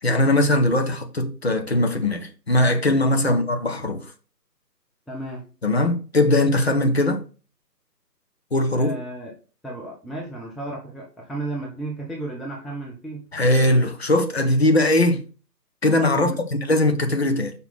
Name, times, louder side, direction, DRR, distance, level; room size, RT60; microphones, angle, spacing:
voice 1, 0.0-4.0 5.6-7.2 8.5-8.9 13.3-15.2 15.8-16.3 16.7-17.5, left 1 dB, 40° left, 1.0 m, -20 dB
voice 2, 5.1-5.4 8.7-9.3 9.6-13.3 16.1-16.4, right 2 dB, ahead, 0.5 m, -33 dB
5.6 x 4.0 x 5.9 m
figure-of-eight pair, 150°, 50 cm